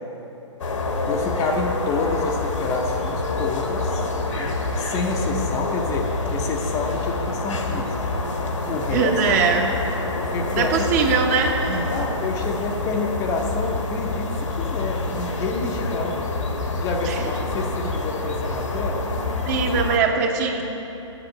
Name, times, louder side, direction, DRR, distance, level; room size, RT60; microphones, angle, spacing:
sound 1, 0.6-20.0, left 3 dB, 80° left, 1.7 m, -27 dB
voice 1, 1.1-8.0 8.6-9.6 10.1-10.9 11.9-16.3 16.7-19.0, left 3 dB, 20° left, 2 dB, 0.7 m, -28 dB
voice 2, 8.9-9.7 10.5-11.9 17.0-17.2 19.4-20.6, right 5 dB, 35° right, 3 dB, 1.1 m, -21 dB
8.2 x 8.1 x 8.7 m, 3.0 s
hypercardioid pair, 140°, 16 cm